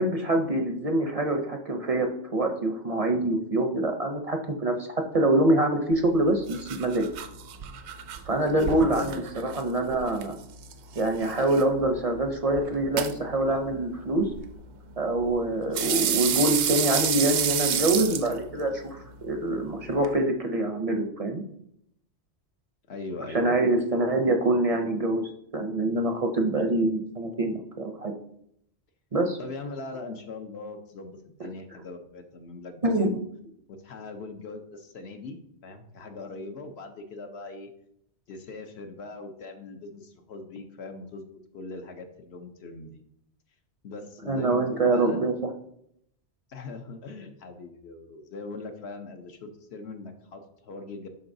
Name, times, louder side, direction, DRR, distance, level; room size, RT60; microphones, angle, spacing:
voice 1, 0.0-4.9 5.1-7.1 8.3-10.4 11.0-14.3 15.0-21.4 23.3-25.2 25.5-28.1 29.1-29.4 32.8-33.1 44.3-45.3, right 1 dB, 45° right, 4 dB, 0.5 m, -25 dB
sound 1, 5.9-20.1, right 8 dB, 75° right, 0.8 m, -32 dB
voice 2, 8.5-9.4 22.9-23.6 29.4-33.2 33.7-37.7 38.3-43.0 43.8-45.4 46.5-51.1, left 3 dB, 70° left, 5 dB, 1.0 m, -40 dB
11.0 x 3.8 x 2.6 m, 0.72 s
omnidirectional pair, 1.2 m